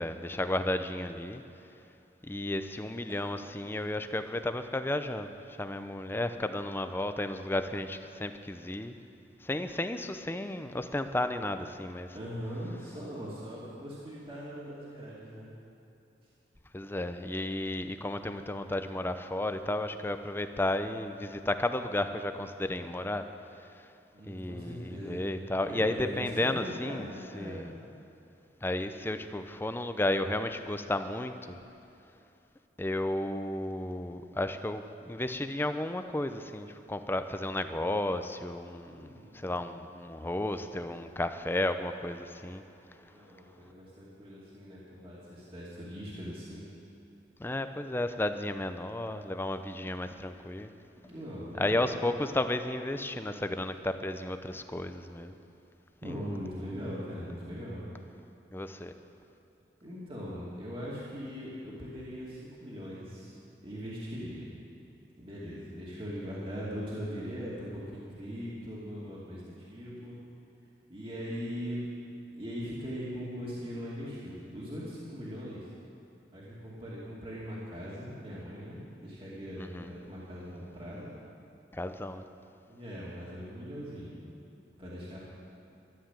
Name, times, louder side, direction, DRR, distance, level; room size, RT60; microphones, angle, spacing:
voice 1, 0.0-1.4 2.2-9.0 9.4-12.1 16.7-23.3 23.6-23.9 24.3-27.1 27.3-27.7 28.6-31.6 32.8-42.6 47.4-50.7 51.5-55.3 56.0-56.2 58.5-58.9 79.6-79.9 81.7-82.2, left 1 dB, 15° left, 9 dB, 0.6 m, -33 dB
voice 2, 12.1-15.5 24.1-27.7 38.8-39.5 42.8-46.7 51.0-52.2 56.0-57.8 59.8-63.3 63.6-64.5 65.2-70.2 70.9-71.9 72.3-75.7 76.3-81.1 82.7-84.1 84.8-85.2, equal, 30° right, -7 dB, 2.5 m, -40 dB
13.0 x 11.5 x 7.5 m, 2.7 s
head